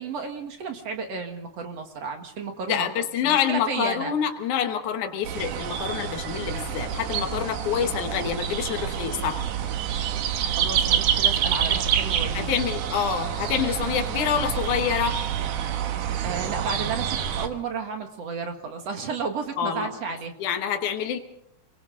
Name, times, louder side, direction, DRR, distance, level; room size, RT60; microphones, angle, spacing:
voice 1, 0.0-2.9 3.2-4.1 10.6-12.6 16.2-20.3, right 5 dB, 55° right, 5 dB, 2.6 m, -32 dB
voice 2, 2.7-9.4 12.3-15.2 19.6-20.0 20.4-21.2, left 8 dB, 80° left, 6 dB, 2.8 m, -27 dB
sound 1, 5.2-17.5, right 9 dB, 90° right, 2.9 m, -27 dB
29.0 x 23.0 x 3.9 m, 0.74 s
omnidirectional pair, 3.5 m